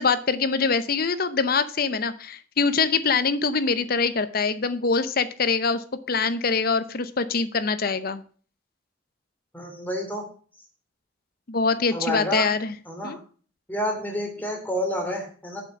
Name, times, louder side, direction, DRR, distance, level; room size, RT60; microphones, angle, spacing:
voice 1, 0.0-8.2 11.5-12.7 13.0-13.2, left 4 dB, 50° left, 13 dB, 0.7 m, -24 dB
voice 2, 9.5-10.2 11.9-12.5 12.9-13.2 13.7-15.6, equal, 10° left, 1 dB, 2.7 m, -29 dB
7.7 x 5.9 x 6.9 m, 0.42 s
head